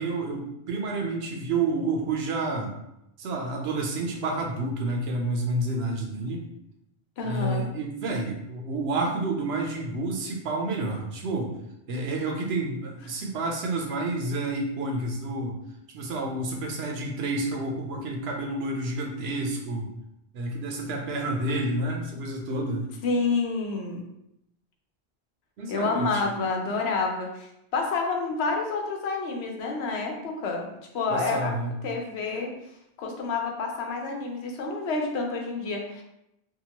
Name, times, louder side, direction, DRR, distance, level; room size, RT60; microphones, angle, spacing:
voice 1, 0.0-2.7 3.2-6.4 7.2-11.5 11.9-15.6 15.9-19.9 20.3-22.9 25.6-26.4 31.1-31.7, right 2 dB, 75° right, 1 dB, 0.8 m, -29 dB
voice 2, 7.2-7.7 23.0-24.0 25.7-31.5 31.8-32.5 33.0-36.0, left 4 dB, 80° left, 1 dB, 0.9 m, -29 dB
2.8 x 2.3 x 2.8 m, 0.82 s
omnidirectional pair, 1.1 m